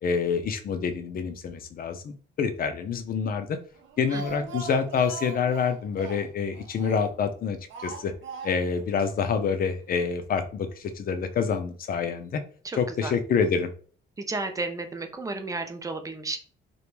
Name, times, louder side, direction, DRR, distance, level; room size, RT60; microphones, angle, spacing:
voice 1, 0.0-2.1 2.4-3.6 4.0-8.1 8.4-12.4 12.8-13.7, left 6 dB, 45° left, 9 dB, 0.4 m, -27 dB
Speech, 3.8-7.3 7.7-8.9 9.1-9.2 9.5-9.6, right 6 dB, 75° right, 0.6 m, -40 dB
voice 2, 4.1-4.6 12.6-13.1 14.2-16.4, right 3 dB, 15° right, 6 dB, 0.5 m, -33 dB
2.4 x 2.2 x 3.1 m, 0.43 s
cardioid pair, 90°, 20 cm